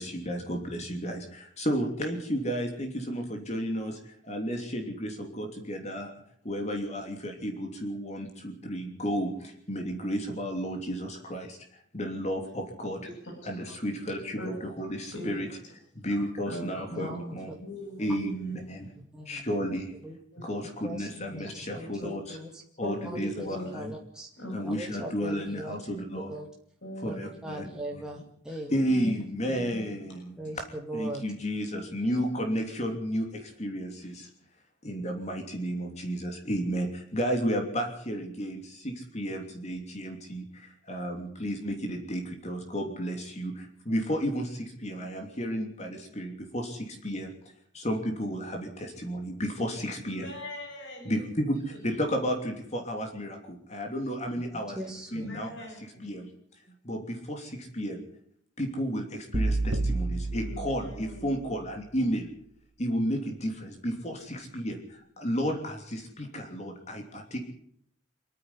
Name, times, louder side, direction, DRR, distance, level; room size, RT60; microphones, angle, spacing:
voice 1, 0.0-6.1 6.4-13.0 13.4-15.5 15.9-17.5 18.0-18.9 19.2-19.9 20.4-22.4 22.8-23.9 24.5-26.3 27.0-27.6 27.9-28.0 28.7-30.6 30.9-34.3 34.8-47.3 47.7-50.3 51.0-54.8 55.1-55.7 56.0-56.3 56.8-58.0 58.6-62.3 62.8-67.4, equal, 35° left, 3 dB, 3.1 m, -32 dB
voice 2, 13.0-13.7 14.4-14.6 15.1-15.4 16.2-18.7 20.3-20.4 22.0-22.1 22.8-23.8 24.4-24.7 25.7-25.8 26.1-26.2 26.8-27.2 27.6-27.7 28.5-28.6 29.0-29.1 29.5-29.9 30.4-30.6 50.0-51.2 51.7-51.8 54.8-56.1 60.3-61.3, equal, 75° left, 1 dB, 7.7 m, -41 dB
voice 3, 16.9-17.4 18.0-18.2 19.0-19.4 20.0-20.2 20.8-22.6 23.1-23.5 23.7-24.3 24.6-25.8 26.2-26.5 27.0-27.2 27.4-28.9 30.4-31.2 32.1-32.2 54.8-55.3, equal, 5° right, -2 dB, 2.4 m, -40 dB
sound 1, 59.3-61.5, right 2 dB, 90° right, 1.7 m, -30 dB
26.5 x 9.9 x 9.8 m, 0.67 s
head